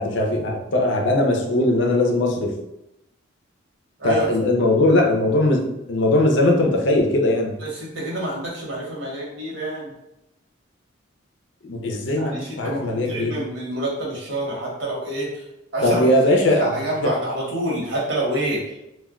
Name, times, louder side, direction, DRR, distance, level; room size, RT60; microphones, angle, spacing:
voice 1, 0.0-2.5 4.0-7.5 11.6-13.4 15.8-16.7 17.0-17.1, left 1 dB, 70° left, 1 dB, 0.5 m, -20 dB
voice 2, 7.6-9.9 12.2-15.4 15.7-16.0 16.5-18.7, right 1 dB, 70° right, -4 dB, 1.0 m, -27 dB
2.2 x 2.2 x 3.6 m, 0.86 s
head